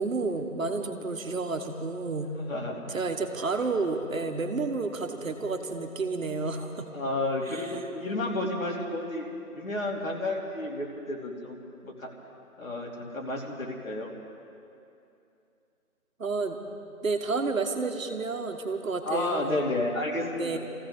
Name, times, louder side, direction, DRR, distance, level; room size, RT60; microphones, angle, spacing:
voice 1, 0.0-2.3 2.9-6.9 7.5-7.6 16.2-16.6 17.0-19.6 20.4-20.6, right 3 dB, 60° right, 5 dB, 1.4 m, -30 dB
voice 2, 2.5-3.0 3.5-3.7 6.6-6.7 6.9-9.2 9.6-11.6 11.8-12.1 12.6-14.1 19.0-20.6, left 2 dB, 65° left, -1 dB, 2.8 m, -31 dB
26.0 x 15.5 x 3.6 m, 2.7 s
figure-of-eight pair, 170°, 44 cm